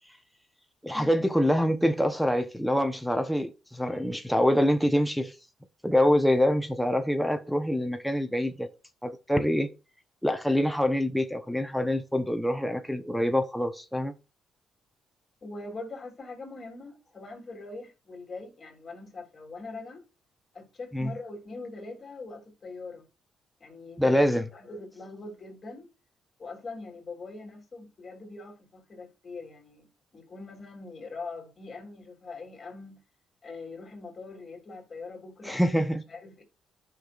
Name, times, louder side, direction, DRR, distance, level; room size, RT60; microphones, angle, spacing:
voice 1, 0.8-5.3 5.8-8.7 9.0-9.7 10.2-14.1 20.9-21.1 24.0-24.4 35.4-36.0, equal, ahead, 0.9 m, -25 dB
voice 2, 15.4-20.0 20.5-23.1 23.6-25.9 26.4-33.0 33.4-35.7 36.1-36.4, left 3 dB, 35° left, 3.2 m, -42 dB
13.5 x 5.8 x 2.5 m
cardioid pair, 90°, 0 cm